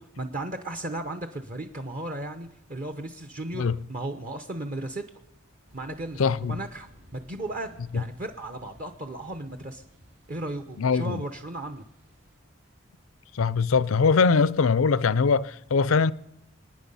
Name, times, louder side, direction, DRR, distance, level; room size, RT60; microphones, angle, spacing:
voice 1, 0.0-5.0 5.7-6.2 6.5-9.8 10.3-11.8, right 2 dB, 40° right, 0.8 m, -35 dB
sound 1, 5.7-12.4, equal, 80° right, 3.7 m, -56 dB
voice 2, 6.2-6.6 7.9-8.0 10.8-11.2 13.3-16.1, left 5 dB, 85° left, 0.5 m, -22 dB
26.0 x 9.7 x 5.5 m
head